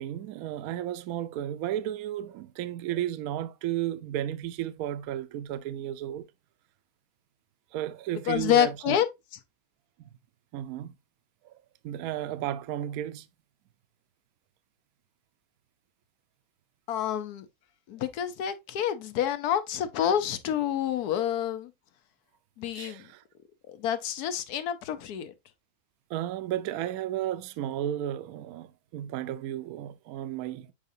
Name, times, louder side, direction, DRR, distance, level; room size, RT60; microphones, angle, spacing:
voice 1, 0.0-6.3 7.7-9.0 10.5-11.0 11.4-11.5 11.8-13.3 22.7-23.2 26.1-30.7, right 12 dB, 75° right, 1.0 m, -33 dB
voice 2, 8.3-9.1 16.9-17.5 17.9-21.7 22.6-23.1 23.7-25.3, left 10 dB, 80° left, 1.3 m, -28 dB
7.4 x 4.9 x 2.6 m
omnidirectional pair, 1.6 m